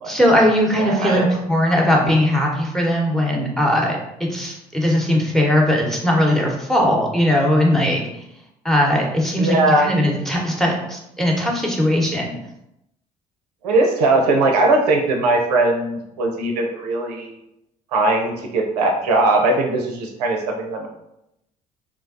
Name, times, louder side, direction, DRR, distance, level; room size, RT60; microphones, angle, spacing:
voice 1, 0.0-8.0 8.6-12.3, equal, ahead, -1 dB, 0.9 m, -19 dB
voice 2, 0.8-1.3 9.4-9.9 13.6-17.4 17.9-20.9, right 2 dB, 80° right, 2 dB, 0.5 m, -19 dB
3.4 x 2.2 x 2.4 m, 0.84 s
hypercardioid pair, 55°, 20 cm